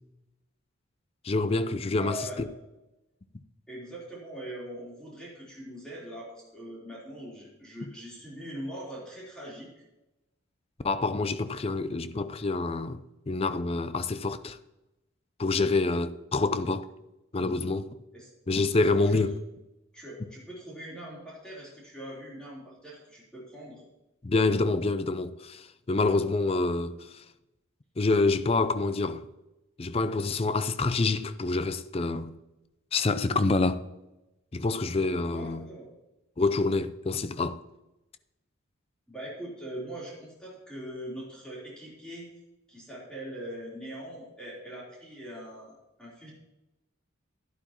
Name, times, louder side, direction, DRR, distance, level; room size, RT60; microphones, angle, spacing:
voice 1, 1.2-2.5 10.8-13.0 13.3-14.6 15.4-16.9 17.3-17.9 18.5-19.3 24.2-27.2 28.0-29.3 29.8-32.4 32.9-33.8 34.5-35.7 36.4-37.6, left 3 dB, 30° left, 0.4 m, -27 dB
voice 2, 1.8-2.4 3.7-9.8 18.1-18.3 19.1-19.2 19.9-23.8 35.3-35.9 39.1-42.3 42.7-46.3, right 1 dB, 5° left, 3.7 m, -42 dB
12.0 x 11.0 x 3.0 m
head